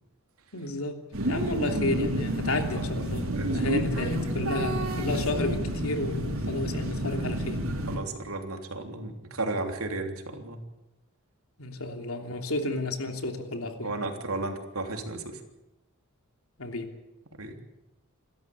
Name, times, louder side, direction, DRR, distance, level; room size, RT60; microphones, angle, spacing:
voice 1, 0.5-7.6 11.6-13.9 16.6-16.9, left 2 dB, 80° left, 5 dB, 3.1 m, -32 dB
sound 1, 1.1-8.0, right 1 dB, 75° right, 3.9 m, -29 dB
voice 2, 3.4-3.8 7.9-10.6 13.8-15.4 17.4-17.6, right 2 dB, 90° right, 4 dB, 3.3 m, -34 dB
28.0 x 13.5 x 8.7 m, 1.0 s
head